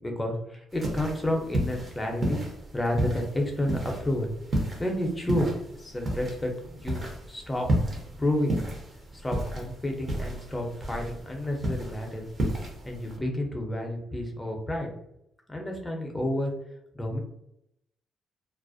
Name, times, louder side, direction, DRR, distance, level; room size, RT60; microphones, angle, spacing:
voice 1, 0.0-2.4 2.7-5.5 5.8-7.0 7.3-7.7 8.2-8.6 9.1-12.2 12.9-14.9 15.5-16.5 16.9-17.2, left 1 dB, 15° left, 1 dB, 0.6 m, -30 dB
sound 1, 0.7-13.2, right 1 dB, 35° right, 0.7 m, -32 dB
2.3 x 2.1 x 2.5 m, 0.78 s
cardioid pair, 90°, 0 cm